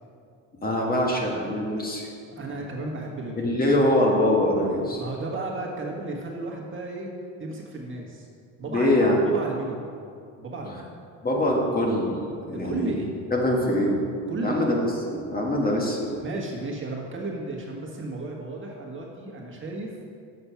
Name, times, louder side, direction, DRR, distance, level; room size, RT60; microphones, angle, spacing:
voice 1, 0.6-2.1 3.4-5.0 8.7-9.2 11.2-12.9 13.3-14.0 14.4-14.8 15.1-16.1, left 1 dB, 25° left, -1 dB, 1.6 m, -23 dB
voice 2, 2.3-3.6 4.9-7.1 7.4-8.3 8.6-9.9 10.4-10.9 12.5-13.2 14.3-14.7 16.2-19.9, right 2 dB, 30° right, -1 dB, 1.6 m, -33 dB
7.3 x 6.6 x 5.8 m, 2.3 s
supercardioid pair, 100°, 38 cm